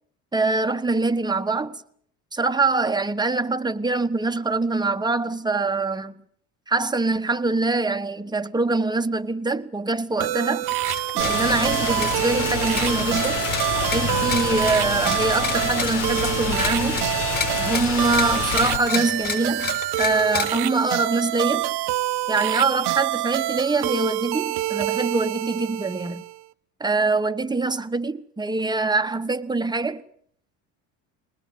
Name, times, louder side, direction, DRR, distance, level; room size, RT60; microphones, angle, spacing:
voice 1, 0.3-1.8 2.3-6.1 6.7-10.6 11.1-13.5 13.9-17.1 17.6-21.7 22.3-26.2 26.8-30.0, right 3 dB, 10° right, 1.1 m, -24 dB
sound 1, 10.2-26.4, right 15 dB, 60° right, 1.0 m, -27 dB
sound 2, 10.6-20.6, left 6 dB, 45° left, 5.9 m, -32 dB
Rain, 11.2-18.8, left 6 dB, 70° left, 3.8 m, -28 dB
21.0 x 20.0 x 7.9 m
supercardioid pair, 90°, 44 cm